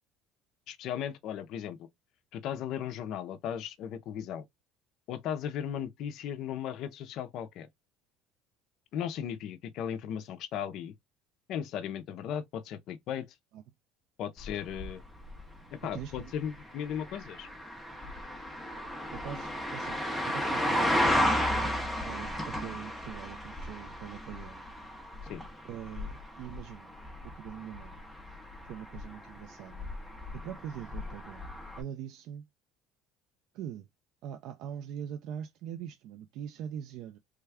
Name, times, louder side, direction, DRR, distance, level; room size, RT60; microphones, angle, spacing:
voice 1, 0.7-1.9 2.3-4.5 5.1-7.7 8.9-11.0 11.5-13.3 14.2-15.0 15.7-17.5 25.3-25.4, left 9 dB, 45° left, 0.5 m, -36 dB
sound 1, 14.4-31.8, equal, ahead, 0.6 m, -34 dB
voice 2, 15.9-16.3 19.1-20.0 20.3-21.5 22.0-24.6 25.6-26.9 27.3-28.0 28.7-29.9 30.3-31.5 31.8-32.5 33.5-33.9 34.2-37.2, right 9 dB, 50° right, 0.3 m, -42 dB
3.3 x 2.2 x 3.4 m
cardioid pair, 175°, 0 cm